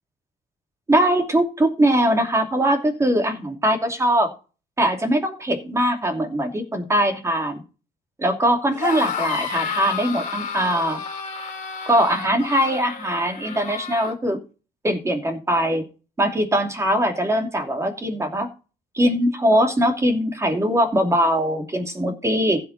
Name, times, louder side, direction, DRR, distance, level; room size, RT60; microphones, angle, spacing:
voice 1, 0.9-4.3 4.8-7.6 8.2-11.0 11.9-14.4 14.8-15.8 16.2-18.5 18.9-22.6, equal, 15° right, 5 dB, 2.7 m, -21 dB
sound 1, 8.7-14.1, left 6 dB, 45° left, 3.3 m, -31 dB
15.5 x 5.8 x 4.1 m, 0.34 s
cardioid pair, 110°, 17 cm